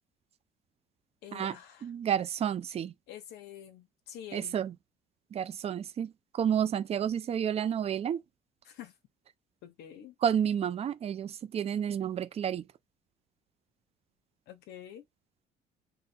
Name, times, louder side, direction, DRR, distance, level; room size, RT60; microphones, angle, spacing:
voice 1, 1.2-1.9 3.1-4.6 8.6-8.9 9.6-10.1 14.5-15.1, left 10 dB, 80° left, 0.8 m, -47 dB
voice 2, 1.8-2.9 4.3-4.7 5.3-8.2 10.2-12.6, right 9 dB, 35° right, 0.5 m, -30 dB
3.8 x 2.2 x 4.3 m
cardioid pair, 110°, 17 cm